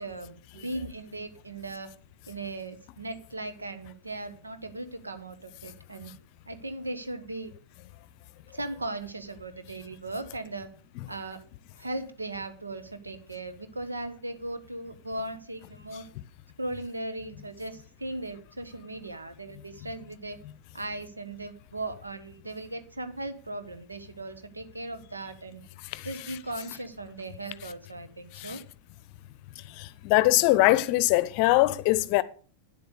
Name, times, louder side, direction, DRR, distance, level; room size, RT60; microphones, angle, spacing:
voice 1, 0.0-1.9 2.3-6.1 6.5-7.5 8.5-10.7 11.1-11.4 11.8-16.0 16.6-20.4 20.7-25.6 26.0-28.6, right 2 dB, 80° right, 1.3 m, -38 dB
voice 2, 29.7-32.2, left 18 dB, 45° left, 0.7 m, -22 dB
10.0 x 8.0 x 6.7 m
figure-of-eight pair, 90°, 0 cm